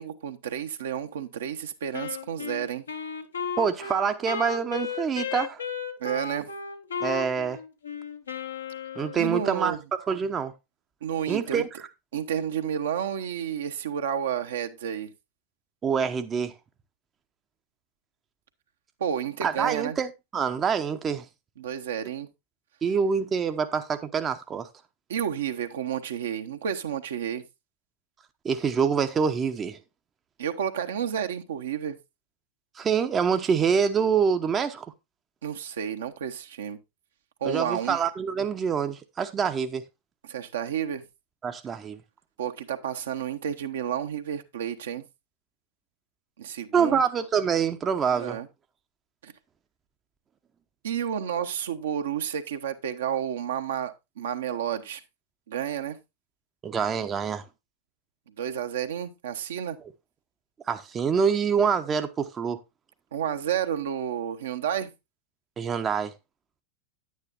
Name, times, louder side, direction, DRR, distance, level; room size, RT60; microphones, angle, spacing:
voice 1, 0.0-2.9 6.0-6.5 9.2-9.8 11.0-11.6 12.1-15.1 19.0-20.0 21.6-22.3 25.1-27.4 30.4-32.0 35.4-36.8 37.4-38.0 40.2-41.0 42.4-45.0 46.4-47.0 48.1-48.5 49.2-49.3 50.8-55.0 55.5-56.0 58.4-59.8 63.1-64.9, right 9 dB, 60° right, 1.0 m, -31 dB
Wind instrument woodwind instrument, 1.9-9.4, left 6 dB, 75° left, 1.1 m, -34 dB
voice 2, 3.6-5.6 7.0-7.6 9.0-9.8 10.1-10.5 11.3-11.7 15.8-16.5 19.4-21.3 22.8-24.7 28.4-29.8 32.8-34.9 37.4-39.8 41.4-42.0 46.7-48.4 56.6-57.4 60.7-62.6 65.6-66.1, right 6 dB, 25° right, 0.7 m, -26 dB
9.8 x 9.4 x 2.6 m
figure-of-eight pair, 90°, 0 cm